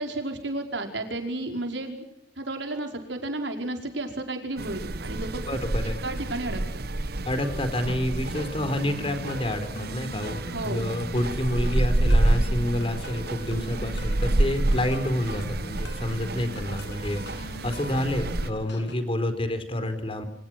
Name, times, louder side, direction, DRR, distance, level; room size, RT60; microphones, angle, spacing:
voice 1, 0.0-2.0 2.4-6.8 10.5-10.9, right 2 dB, 80° right, 4 dB, 5.2 m, -32 dB
sound 1, 4.6-18.5, right 1 dB, 60° right, 1.1 m, -28 dB
voice 2, 5.5-6.0 7.2-20.2, left 1 dB, 30° left, 9 dB, 4.0 m, -29 dB
sound 2, 7.3-19.0, left 2 dB, 70° left, 6.3 m, -41 dB
28.0 x 26.0 x 6.1 m, 0.73 s
head